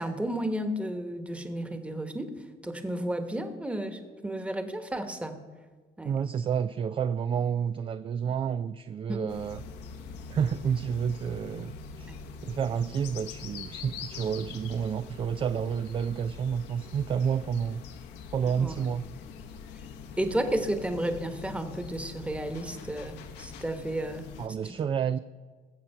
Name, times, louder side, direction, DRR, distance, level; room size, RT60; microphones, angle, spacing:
voice 1, 0.0-5.4 6.0-6.1 9.1-9.2 12.1-12.2 18.4-18.8 20.2-24.2 24.6-24.8, right 1 dB, 5° right, 1.3 m, -32 dB
voice 2, 6.0-9.6 10.3-12.1 12.4-17.8 18.3-19.0 24.4-25.2, right 7 dB, 30° right, 0.3 m, -30 dB
sound 1, 9.3-24.5, left 6 dB, 90° left, 1.2 m, -44 dB
20.0 x 7.4 x 5.6 m
cardioid pair, 110°, 17 cm